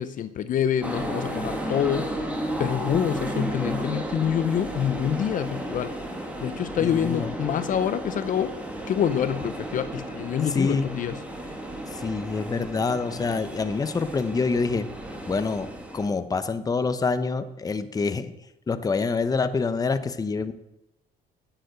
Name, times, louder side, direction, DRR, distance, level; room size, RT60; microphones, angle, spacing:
voice 1, 0.0-2.3 2.6-6.0 6.4-8.5 8.9-11.2, left 9 dB, 50° left, 12 dB, 0.7 m, -26 dB
sound 1, 0.8-16.1, right 1 dB, 10° right, 2.1 m, -33 dB
voice 2, 6.8-7.3 10.5-10.9 11.9-14.9 15.2-18.3 18.7-20.5, left 4 dB, 20° left, 11 dB, 0.8 m, -26 dB
10.0 x 8.1 x 8.0 m, 0.90 s
cardioid pair, 110°, 17 cm